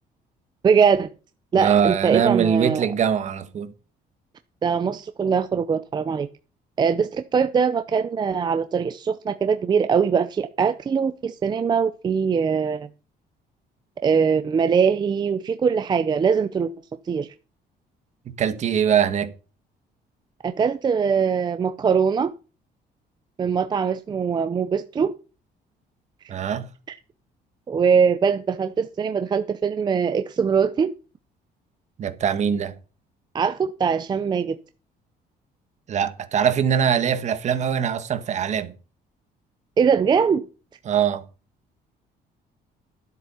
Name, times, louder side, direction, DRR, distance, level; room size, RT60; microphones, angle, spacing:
voice 1, 0.6-1.1 1.5-2.9 4.6-6.3 6.8-12.9 14.0-16.7 17.1-17.3 20.4-22.3 23.4-25.1 27.7-30.9 33.3-34.6 39.8-40.4, right 6 dB, 25° right, 0.6 m, -22 dB
voice 2, 1.6-3.7 18.4-19.3 26.3-26.7 32.0-32.7 35.9-38.7 40.8-41.2, right 8 dB, 45° right, 1.5 m, -22 dB
13.0 x 7.8 x 5.6 m
cardioid pair, 160°, 17 cm